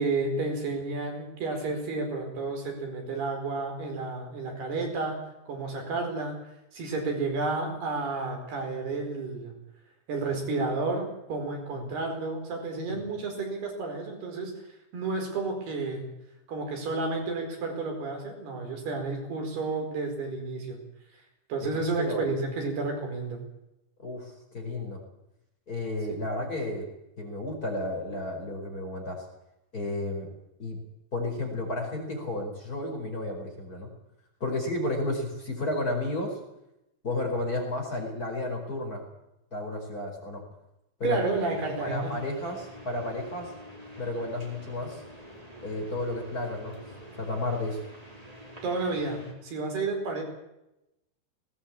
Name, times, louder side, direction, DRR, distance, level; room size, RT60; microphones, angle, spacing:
voice 1, 0.0-5.2 5.5-6.4 6.7-9.5 10.1-14.5 14.9-16.1 16.5-20.8 21.5-23.4 41.0-42.2 48.6-50.2, right 3 dB, 75° right, 3 dB, 6.6 m, -31 dB
voice 2, 21.6-22.2 24.0-25.0 25.7-26.9 27.2-29.2 29.7-30.3 30.6-30.8 31.1-33.9 34.4-36.3 37.0-39.0 39.5-40.4 41.0-41.2 41.8-43.5 44.0-45.0 45.6-46.8 47.2-47.8, left 1 dB, 20° left, 1 dB, 4.9 m, -32 dB
sound 1, 41.1-49.3, left 1 dB, 10° right, 3.8 m, -47 dB
19.5 x 18.5 x 8.7 m, 0.88 s
omnidirectional pair, 4.7 m